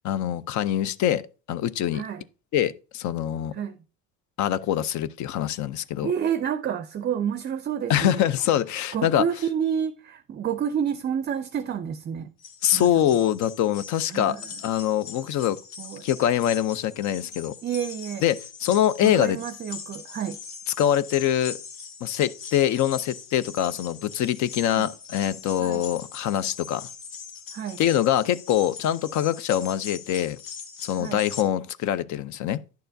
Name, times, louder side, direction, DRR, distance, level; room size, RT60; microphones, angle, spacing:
voice 1, 0.0-1.2 1.5-2.0 2.5-3.5 4.4-6.1 7.9-9.2 12.6-14.4 14.6-15.6 16.0-17.5 18.2-19.4 20.8-21.6 22.0-26.9 27.8-30.4 30.8-32.6, left 11 dB, 60° left, 0.5 m, -24 dB
voice 2, 6.0-8.3 8.9-12.3 12.7-12.9 14.1-14.5 15.8-16.1 17.6-18.2 19.0-20.4 24.7-24.9 25.6-25.9 27.5-27.8 31.0-31.2, right 8 dB, 30° right, 0.4 m, -29 dB
sound 1, 12.4-31.4, left 6 dB, 75° left, 1.1 m, -41 dB
10.5 x 6.7 x 2.6 m
cardioid pair, 110°, 34 cm